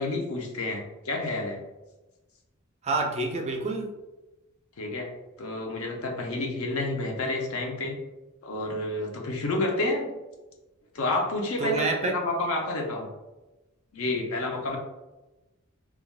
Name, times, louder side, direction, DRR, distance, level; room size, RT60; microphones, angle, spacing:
voice 1, 0.0-1.6 4.8-5.1 5.4-8.0 8.4-10.1 10.9-13.1 13.9-14.8, left 2 dB, 70° left, 1 dB, 0.6 m, -29 dB
voice 2, 2.8-3.9 11.6-12.2, right 3 dB, 30° right, 3 dB, 0.3 m, -27 dB
3.2 x 2.2 x 2.3 m, 1.1 s
head